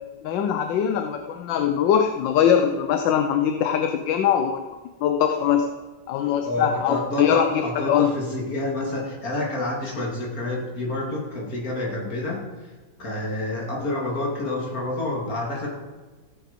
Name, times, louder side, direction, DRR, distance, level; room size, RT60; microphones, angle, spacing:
voice 1, 0.2-4.6 5.0-5.7 6.1-8.1, left 8 dB, 80° left, 6 dB, 1.4 m, -22 dB
voice 2, 6.4-12.4 13.0-15.7, left 2 dB, 50° left, -3 dB, 3.2 m, -28 dB
15.5 x 8.4 x 5.3 m, 1.3 s
omnidirectional pair, 2.0 m